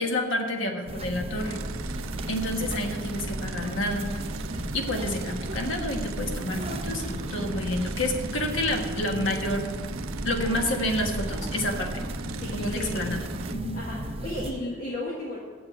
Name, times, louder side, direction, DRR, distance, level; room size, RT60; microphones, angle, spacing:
voice 1, 0.0-1.6 2.3-4.1 4.7-9.7 10.2-11.9 12.5-13.3 13.6-13.8, left 1 dB, 70° left, 3 dB, 1.5 m, -29 dB
sound 1, 0.9-14.5, right 1 dB, 30° right, 0.7 m, -34 dB
sound 2, 1.4-13.5, right 8 dB, 85° right, 0.4 m, -41 dB
voice 2, 12.4-13.0 13.7-15.4, left 1 dB, 40° left, -4 dB, 1.4 m, -34 dB
8.1 x 7.3 x 8.7 m, 1.5 s
head